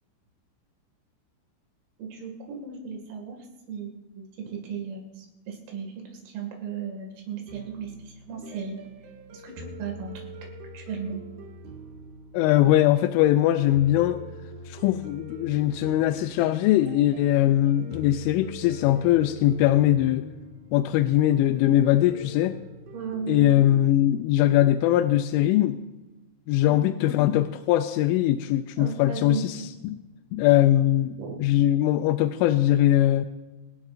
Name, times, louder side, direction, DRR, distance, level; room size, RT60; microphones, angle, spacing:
voice 1, 2.0-3.4 3.7-8.8 9.3-10.3 10.7-11.2 22.9-23.5 26.7-27.2 28.8-29.7 31.2-31.4, right 6 dB, 80° right, 1 dB, 4.9 m, -36 dB
sound 1, 7.5-24.2, right 1 dB, 60° right, 3.5 m, -44 dB
voice 2, 12.3-14.2 14.7-20.3 20.7-22.6 23.3-25.8 26.5-30.0 30.3-33.3, left 13 dB, 85° left, 9 dB, 2.8 m, -21 dB
27.0 x 11.0 x 2.6 m, 1.1 s
omnidirectional pair, 5.9 m